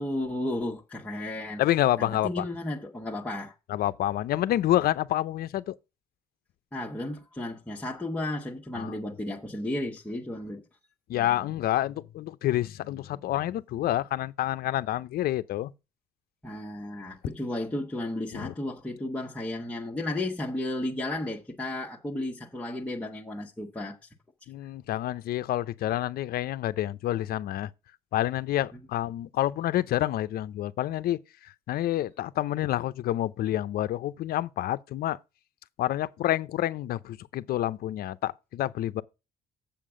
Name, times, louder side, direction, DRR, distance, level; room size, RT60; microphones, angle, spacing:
voice 1, 0.0-1.6 2.0-3.5 6.7-10.6 16.4-24.0, left 1 dB, 10° left, 1.2 m, -33 dB
voice 2, 1.6-2.4 3.7-5.8 8.7-8.9 11.1-15.7 18.3-18.5 24.5-27.7 28.1-31.2 31.7-35.2 35.8-39.0, left 13 dB, 65° left, 0.6 m, -28 dB
7.5 x 7.1 x 4.9 m
cardioid pair, 110°, 17 cm